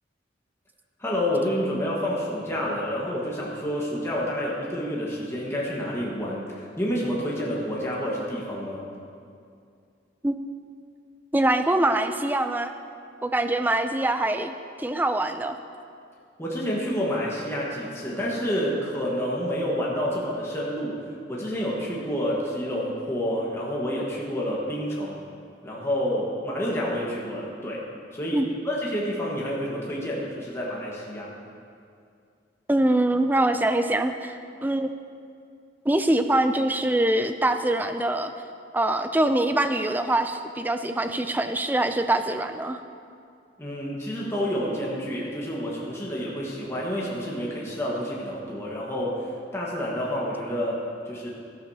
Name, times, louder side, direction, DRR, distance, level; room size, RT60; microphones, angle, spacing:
voice 1, 1.0-8.9 16.4-21.0 21.3-25.2 25.6-27.8 28.1-31.3 43.6-51.3, equal, 15° left, -5 dB, 1.5 m, -29 dB
voice 2, 11.3-12.7 13.2-14.5 14.8-15.6 28.3-28.5 32.7-34.9 35.9-38.3 38.7-42.8, right 1 dB, 10° right, 8 dB, 0.4 m, -24 dB
13.0 x 11.5 x 2.8 m, 2.4 s
head